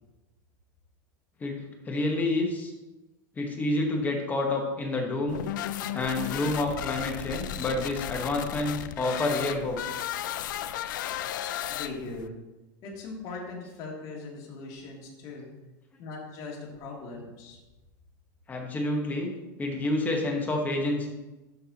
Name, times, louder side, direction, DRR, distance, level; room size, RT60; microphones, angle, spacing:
voice 1, 1.8-2.7 3.4-5.4 5.9-9.8 18.5-19.3 19.6-21.1, left 2 dB, 15° left, 1 dB, 1.2 m, -28 dB
sound 1, 5.3-12.3, left 12 dB, 90° left, 0.5 m, -34 dB
voice 2, 11.7-12.3 12.8-15.5 16.0-17.6, left 3 dB, 45° left, -3 dB, 2.5 m, -40 dB
12.5 x 5.6 x 2.9 m, 1.1 s
supercardioid pair, 150°, 10 cm